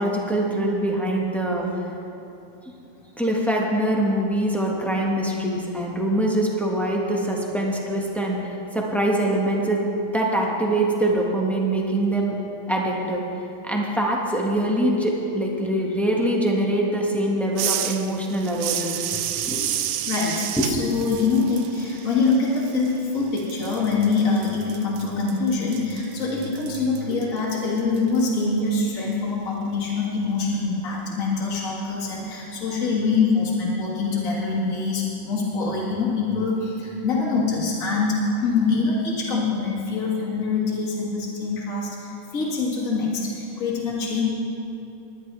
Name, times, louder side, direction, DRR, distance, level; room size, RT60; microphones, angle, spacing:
voice 1, 0.0-1.7 3.2-12.3 12.7-13.2 13.6-19.0 19.4-19.7 20.6-20.7, right 1 dB, ahead, -2 dB, 1.1 m, -23 dB
sound 1, 17.6-23.1 23.4-28.2, right 11 dB, 75° right, 1.2 m, -31 dB
voice 2, 20.1-44.2, left 4 dB, 45° left, -6 dB, 2.2 m, -24 dB
20.0 x 10.5 x 3.4 m, 2.8 s
omnidirectional pair, 2.2 m